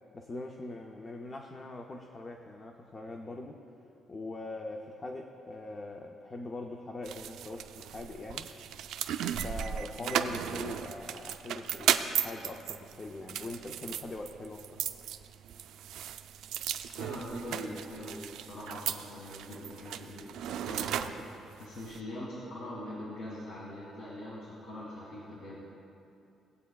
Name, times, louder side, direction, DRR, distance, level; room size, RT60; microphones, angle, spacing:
voice 1, 0.1-3.6 4.1-8.5 9.4-14.9, left 2 dB, 20° left, 3 dB, 0.4 m, -42 dB
sound 1, 7.0-22.0, right 9 dB, 80° right, 0.3 m, -36 dB
voice 2, 16.9-25.6, left 1 dB, 80° left, -6 dB, 1.8 m, -43 dB
17.0 x 8.3 x 2.3 m, 2.7 s
cardioid pair, 170°, 0 cm